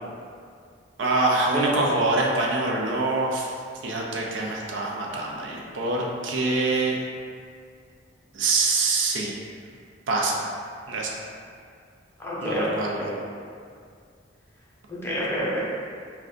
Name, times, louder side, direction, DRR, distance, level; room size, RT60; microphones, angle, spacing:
voice 1, 1.0-3.5 3.8-7.0 8.3-9.4 10.1-10.5 10.9-11.2 12.4-13.1, right 2 dB, 90° right, -2 dB, 0.5 m, -25 dB
voice 2, 1.5-1.8 12.2-12.7 14.9-15.6, equal, 15° left, -8 dB, 0.7 m, -27 dB
2.5 x 2.3 x 3.6 m, 2.2 s
head